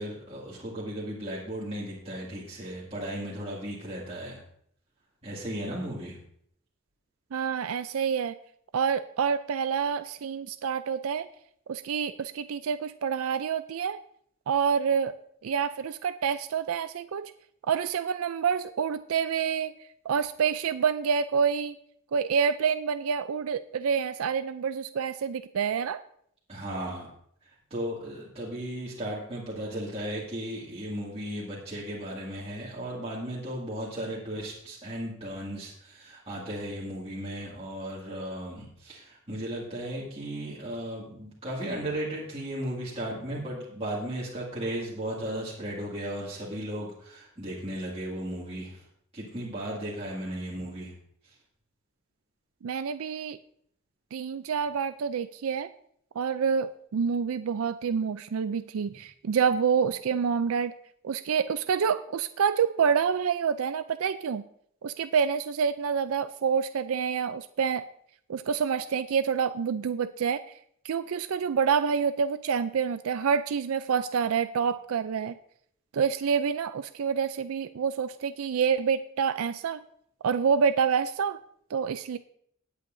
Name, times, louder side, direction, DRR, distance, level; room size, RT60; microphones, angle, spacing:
voice 1, 0.0-4.4 5.2-6.2 26.5-27.1 27.4-48.8 49.1-50.9 51.2-51.3, right 1 dB, 25° right, -6 dB, 2.1 m, -35 dB
voice 2, 7.3-8.4 8.7-11.3 11.7-14.0 14.5-15.1 15.4-17.3 17.7-19.7 20.1-21.8 22.1-26.0 52.6-53.4 54.1-55.7 56.2-60.7 61.0-64.4 64.8-67.8 68.3-70.4 70.8-75.3 75.9-79.8 80.2-81.4 81.7-82.2, right 6 dB, 70° right, 11 dB, 0.4 m, -27 dB
19.0 x 8.3 x 2.6 m, 0.67 s
head